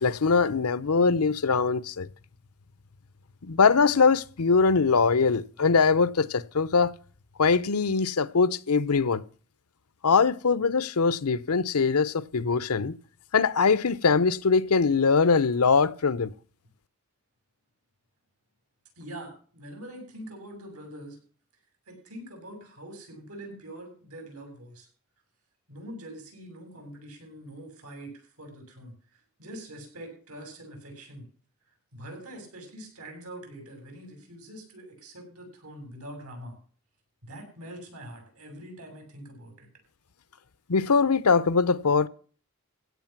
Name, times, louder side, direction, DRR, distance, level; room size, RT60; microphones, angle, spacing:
voice 1, 0.0-2.1 3.4-6.9 7.4-9.2 10.0-13.0 13.3-16.3 40.7-42.1, left 5 dB, 90° left, 0.8 m, -22 dB
voice 2, 19.0-21.2 21.9-24.9 25.7-31.3 31.9-36.6 37.2-39.7, right 1 dB, 80° right, 7.8 m, -44 dB
16.5 x 8.2 x 5.9 m
head